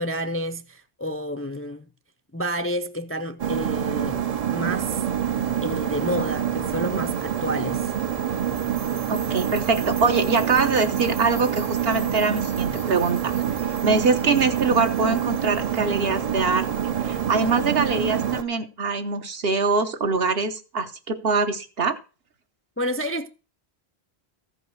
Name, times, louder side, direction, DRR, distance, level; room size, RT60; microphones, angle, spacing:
voice 1, 0.0-1.8 2.3-4.2 4.5-5.0 5.6-7.8 22.8-23.3, equal, 20° left, 0.4 m, -29 dB
sound 1, 3.4-18.4, right 9 dB, 45° right, 0.6 m, -26 dB
sound 2, 8.3-17.4, right 3 dB, 90° right, 2.2 m, -43 dB
voice 2, 9.1-13.3 13.8-16.7 17.0-22.0, right 4 dB, 65° right, 1.3 m, -23 dB
14.0 x 5.4 x 6.3 m
omnidirectional pair, 1.1 m